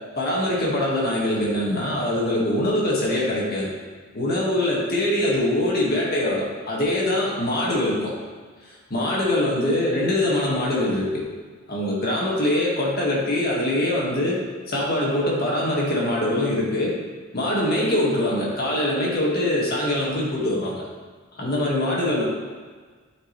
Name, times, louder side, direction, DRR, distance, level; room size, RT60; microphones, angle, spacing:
voice 1, 0.2-3.7 4.1-8.1 8.7-11.2 11.7-14.4 14.7-16.9 17.3-20.8 21.4-22.2, left 1 dB, 50° left, -5 dB, 1.9 m, -23 dB
12.5 x 4.8 x 3.3 m, 1.5 s
head